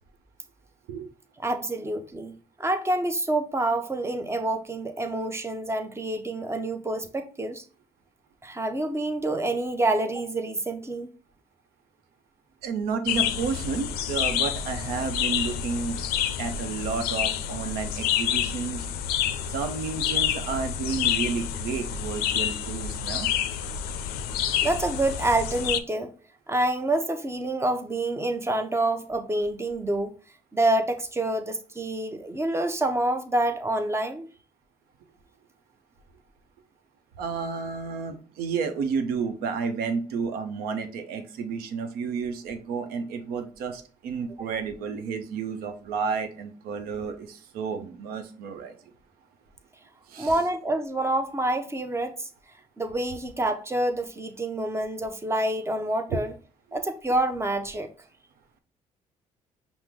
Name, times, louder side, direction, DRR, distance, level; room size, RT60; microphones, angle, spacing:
voice 1, 1.4-7.6 8.4-11.1 24.6-26.1 26.5-30.1 30.5-34.3 44.4-44.5 50.2-52.3 52.8-56.3 56.7-57.9, right 1 dB, 15° right, 0.7 m, -27 dB
voice 2, 12.6-16.0 16.4-18.9 19.5-23.3 37.2-48.7 50.1-50.4 56.1-56.2, right 5 dB, 75° right, 0.7 m, -31 dB
sound 1, 13.1-25.8, left 9 dB, 75° left, 0.4 m, -28 dB
5.7 x 2.0 x 3.5 m
hypercardioid pair, 60°, 16 cm